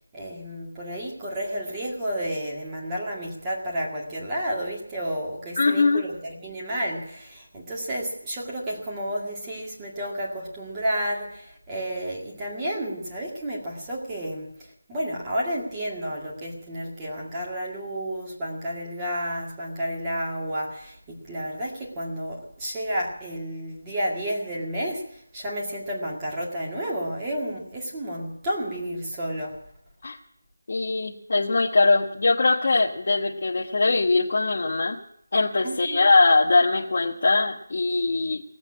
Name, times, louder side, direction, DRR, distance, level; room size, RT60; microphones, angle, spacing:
voice 1, 0.1-14.5 14.9-29.6 35.6-36.0, equal, 10° right, -4 dB, 2.1 m, -31 dB
voice 2, 5.6-6.0 30.0-30.2 30.7-35.0 35.3-38.4, left 3 dB, 40° left, 1 dB, 1.1 m, -21 dB
18.5 x 8.1 x 9.7 m, 0.71 s
figure-of-eight pair, 175°, 0 cm